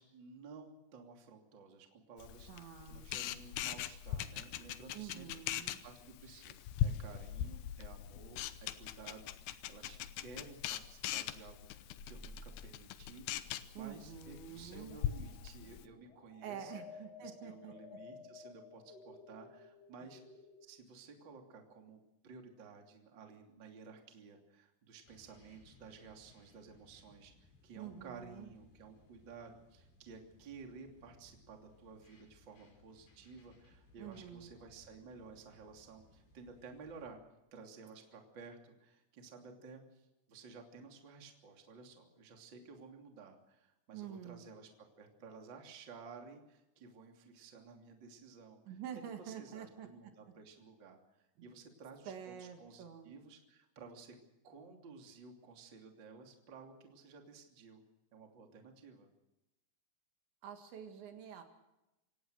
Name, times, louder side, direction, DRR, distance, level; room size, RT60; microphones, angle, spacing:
voice 1, 0.0-6.6 6.8-16.7 17.2-37.2 37.5-44.7 45.0-48.8 49.2-54.2 54.4-57.8 58.1-59.1, right 4 dB, 30° right, 2 dB, 2.5 m, -54 dB
Camera, 2.2-15.8, left 11 dB, 85° left, 2.2 m, -41 dB
voice 2, 2.5-3.1 4.9-5.8 13.8-15.0 16.4-18.0 27.8-28.5 34.0-34.5 43.9-44.4 48.7-49.9 52.1-53.1 60.4-61.4, right 9 dB, 65° right, 5 dB, 3.9 m, -47 dB
sound 1, 12.0-20.7, left 3 dB, 35° left, 3.2 m, -55 dB
sound 2, 25.0-37.1, left 2 dB, 55° left, 7.3 m, -65 dB
27.0 x 17.5 x 6.5 m, 0.94 s
omnidirectional pair, 6.0 m